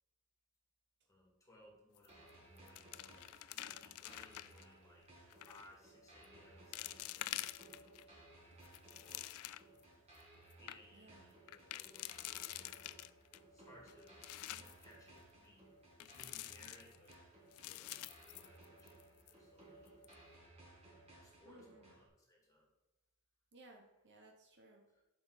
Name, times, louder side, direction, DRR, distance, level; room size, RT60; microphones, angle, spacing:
voice 1, 1.1-5.1 5.3-7.6 8.4-9.3 9.6-9.8 10.6-13.1 13.5-14.1 14.5-15.7 16.0-17.2 17.5-20.0 21.2-22.7 24.9-25.0, left 1 dB, 15° left, -2 dB, 2.1 m, -64 dB
sound 1, 2.0-2.3 2.6-4.6 5.3-5.7 6.2-6.3 6.7-8.0 8.5-9.8 10.2-10.3 10.5-10.8 11.5-13.4 13.9-14.9 16.0-17.1 17.5-19.0 19.3-19.4 19.9-20.1, left 15 dB, 85° left, 0.3 m, -47 dB
sound 2, 2.1-22.1, right 2 dB, 30° right, 2.0 m, -61 dB
voice 2, 10.9-11.3 21.4-21.9 23.5-24.8, right 2 dB, 55° right, 2 dB, 1.0 m, -61 dB
7.8 x 5.7 x 4.1 m, 1.0 s
head